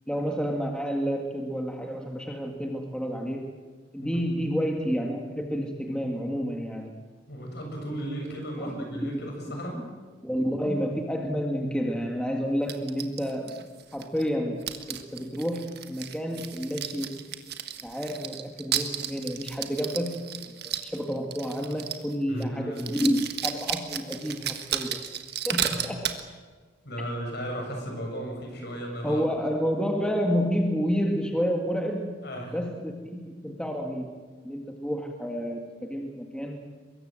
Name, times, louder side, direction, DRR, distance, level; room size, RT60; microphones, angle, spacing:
voice 1, 0.1-3.5 3.9-6.9 8.6-9.1 10.2-13.7 13.9-17.2 17.8-20.2 20.5-25.0 25.5-26.1 29.0-32.2 32.5-34.1 34.4-36.6, equal, 5° left, 2 dB, 1.8 m, -30 dB
voice 2, 7.3-9.9 22.3-22.8 25.6-25.8 26.8-29.2 32.2-32.6, equal, 55° left, 2 dB, 7.3 m, -35 dB
sound 1, 12.7-14.3 14.6-22.1 22.4-22.5 22.7-26.2, right 9 dB, 55° right, 1.6 m, -33 dB
24.0 x 22.0 x 7.7 m, 1.4 s
head